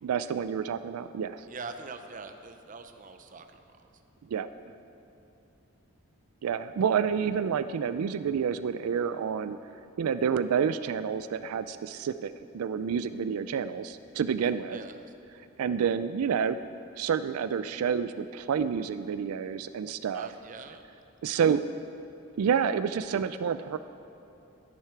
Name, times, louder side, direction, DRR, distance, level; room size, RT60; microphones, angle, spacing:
voice 1, 0.0-1.5 4.3-4.5 6.4-9.6 10.0-14.8 15.6-16.6 17.0-20.3 21.2-21.6 22.4-23.8, right 7 dB, 90° right, 12 dB, 0.4 m, -29 dB
voice 2, 1.5-3.8 14.7-15.1 20.1-20.8, right 4 dB, 35° right, 7 dB, 0.6 m, -43 dB
12.5 x 10.5 x 4.5 m, 2.8 s
head